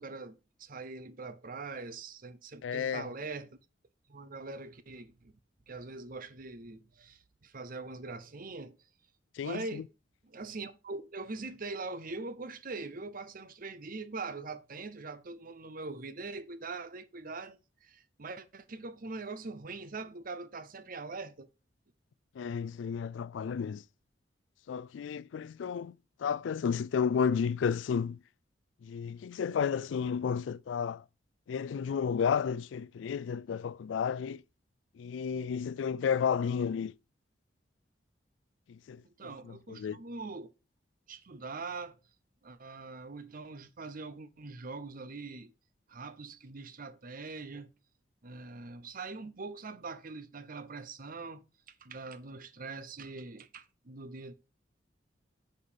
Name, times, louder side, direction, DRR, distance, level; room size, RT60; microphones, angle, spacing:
voice 1, 0.0-3.6 4.1-5.3 5.7-8.8 9.4-9.9 10.2-21.5 39.0-40.5 41.1-42.0 42.4-45.5 45.9-47.7 48.2-54.3, right 3 dB, 50° right, 0.8 m, -42 dB
voice 2, 2.6-3.1 9.4-9.8 22.4-23.8 24.7-28.2 28.8-31.0 31.5-34.4 35.0-36.9 38.7-39.0 39.5-40.0, left 7 dB, 85° left, 0.3 m, -32 dB
9.5 x 5.3 x 5.2 m
head